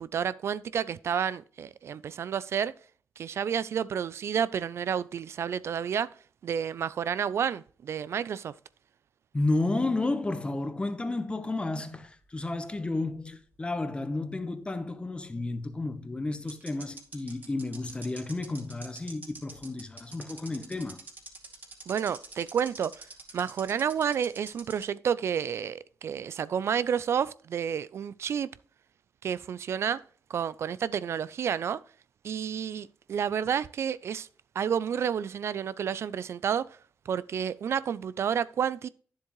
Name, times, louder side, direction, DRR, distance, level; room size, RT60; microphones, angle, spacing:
voice 1, 0.0-2.7 3.2-6.1 6.4-8.5 21.9-23.1 23.3-28.5 29.2-30.0 30.3-31.8 32.2-34.3 34.5-36.8 37.1-38.9, right 8 dB, 65° right, 0.3 m, -30 dB
voice 2, 9.3-21.0, left 2 dB, 20° left, 1.0 m, -32 dB
sound 1, 12.0-13.5 13.8-13.9 15.7-15.8 16.5-24.9, right 3 dB, 40° right, 2.3 m, -46 dB
9.8 x 7.3 x 3.0 m
cardioid pair, 85°, 5 cm